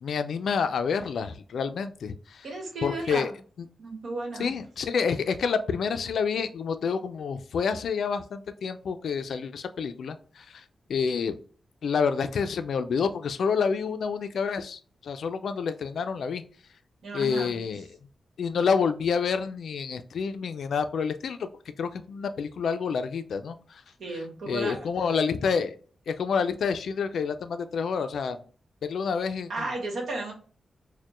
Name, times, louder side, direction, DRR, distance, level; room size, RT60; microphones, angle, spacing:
voice 1, 0.0-2.5 2.8-3.3 4.4-10.6 10.9-11.4 11.8-16.4 17.1-17.9 18.4-21.5 21.8-23.8 24.1-25.7 26.1-28.4 28.8-29.7, left 6 dB, 75° left, 10 dB, 0.3 m, -28 dB
voice 2, 2.4-3.3 3.8-4.5 17.0-17.5 24.0-24.8 29.5-30.3, right 2 dB, 75° right, 1 dB, 1.1 m, -33 dB
4.3 x 2.1 x 3.0 m, 0.43 s
wide cardioid pair, 155°, 0 cm